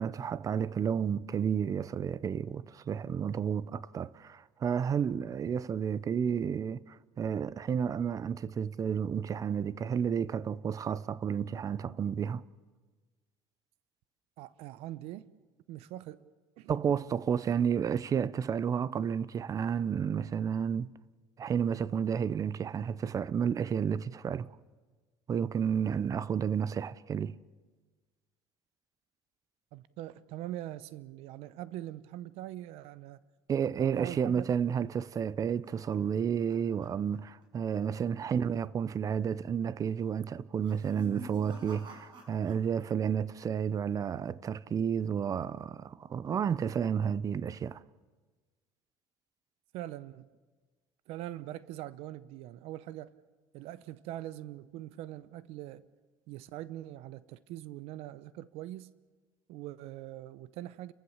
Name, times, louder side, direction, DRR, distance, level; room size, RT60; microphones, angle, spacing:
voice 1, 0.0-12.4 16.7-20.9 21.4-24.5 25.3-27.4 33.5-47.8, right 7 dB, 30° right, 0.6 m, -31 dB
voice 2, 14.4-15.3 15.7-16.3 16.6-16.8 29.7-33.2 33.8-34.5 49.7-50.3 51.1-53.1 53.5-55.8 56.3-58.9 59.5-60.9, right 14 dB, 70° right, 0.8 m, -42 dB
sound 1, 35.1-37.5 37.7-38.1 38.4-38.5 39.2-39.6 40.5-42.9 43.2-43.8, right 2 dB, 45° right, 6.4 m, -50 dB
30.0 x 14.5 x 7.2 m
supercardioid pair, 110°, 11 cm